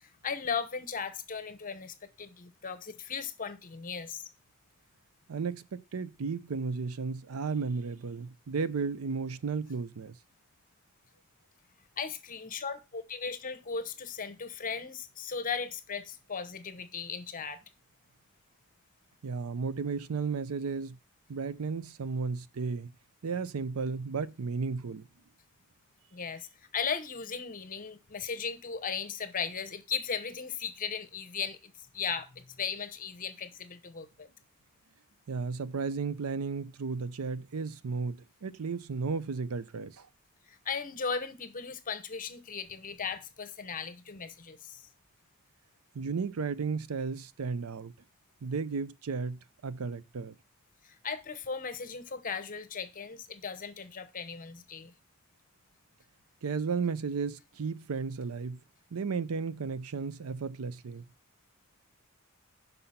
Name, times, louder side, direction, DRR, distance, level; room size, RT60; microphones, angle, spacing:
voice 1, 0.0-4.2 12.0-17.6 26.1-26.5 26.7-34.3 40.5-44.8 50.8-54.9, left 6 dB, 40° left, 0.9 m, -37 dB
voice 2, 5.3-10.1 19.2-21.0 21.3-22.9 23.2-25.0 35.3-40.1 45.9-47.9 48.4-50.3 56.4-58.6 58.9-61.0, right 5 dB, 90° right, 0.5 m, -34 dB
5.8 x 5.6 x 5.6 m
head